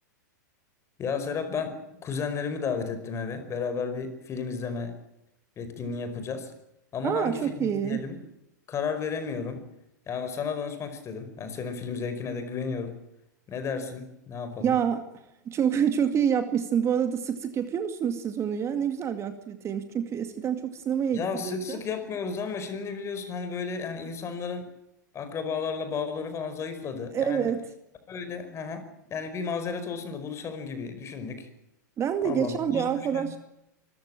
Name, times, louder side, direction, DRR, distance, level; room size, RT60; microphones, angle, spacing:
voice 1, 1.0-5.0 5.6-6.5 6.9-8.2 8.7-9.6 10.1-13.0 13.5-14.7 21.1-24.7 25.1-27.5 28.1-31.5 32.2-33.4, left 5 dB, 30° left, 9 dB, 5.1 m, -33 dB
voice 2, 7.0-8.1 14.6-21.8 27.1-27.7 32.0-33.4, right 8 dB, 30° right, 9 dB, 2.2 m, -27 dB
25.0 x 15.0 x 9.0 m, 0.85 s
hypercardioid pair, 105°, 10 cm